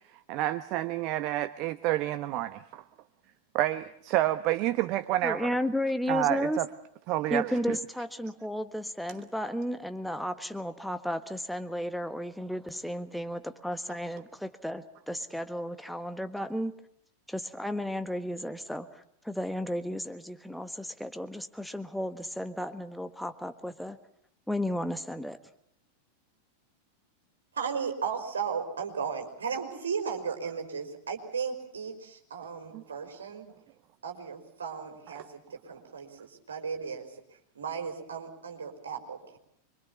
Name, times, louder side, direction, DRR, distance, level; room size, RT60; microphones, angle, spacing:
voice 1, 0.1-2.8 3.5-5.5 6.1-6.7 7.1-7.8 32.7-32.8 35.1-35.3, right 14 dB, 40° right, 12 dB, 1.1 m, -29 dB
voice 2, 5.2-6.6 7.3-16.7 17.3-24.0 24.5-25.4, left 1 dB, ahead, 9 dB, 1.4 m, -33 dB
voice 3, 27.5-33.5 34.0-35.2 35.5-37.1 37.6-39.4, right 6 dB, 70° right, 4 dB, 5.1 m, -35 dB
26.0 x 24.5 x 7.1 m, 0.69 s
figure-of-eight pair, 90°, 0 cm